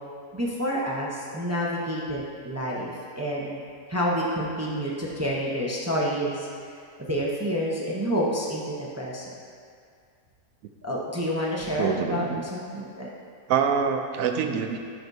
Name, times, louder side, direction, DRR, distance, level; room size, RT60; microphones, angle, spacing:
voice 1, 0.3-2.9 3.2-3.6 3.9-6.5 7.0-9.4 10.8-12.3 12.5-13.1, equal, 15° right, -4 dB, 0.7 m, -28 dB
voice 2, 11.8-12.4 13.5-14.8, right 7 dB, 75° right, 6 dB, 1.0 m, -25 dB
13.5 x 6.0 x 2.7 m, 2.2 s
omnidirectional pair, 1.5 m